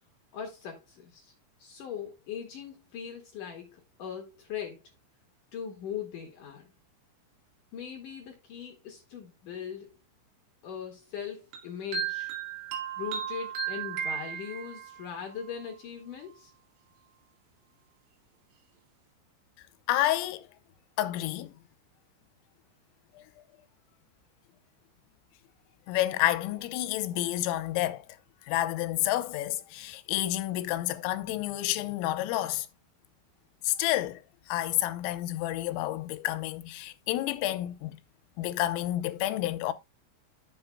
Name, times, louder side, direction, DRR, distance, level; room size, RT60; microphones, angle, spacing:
voice 1, 0.3-1.3 1.6-4.8 5.5-6.7 7.7-9.9 10.6-12.3 13.0-16.5, left 8 dB, 70° left, 2.0 m, -40 dB
sound 1, 11.5-15.0, right 8 dB, 70° right, 4.5 m, -35 dB
voice 2, 19.9-20.5 21.0-21.5 23.2-23.3 25.9-28.0 28.5-32.7 33.6-34.2 34.5-38.0 38.4-39.7, left 14 dB, 85° left, 3.3 m, -29 dB
12.0 x 7.8 x 2.2 m
omnidirectional pair, 6.0 m